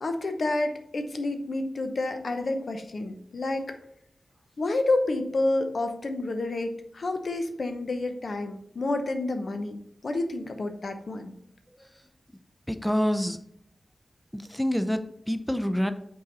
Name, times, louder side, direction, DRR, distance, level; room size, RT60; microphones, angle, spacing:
voice 1, 0.0-3.7 4.6-11.3, left 2 dB, 70° left, 6 dB, 0.8 m, -29 dB
voice 2, 12.7-13.4 14.3-15.0 15.3-15.9, equal, 5° left, 9 dB, 0.5 m, -26 dB
6.5 x 4.0 x 4.1 m, 0.72 s
cardioid pair, 60°, 0 cm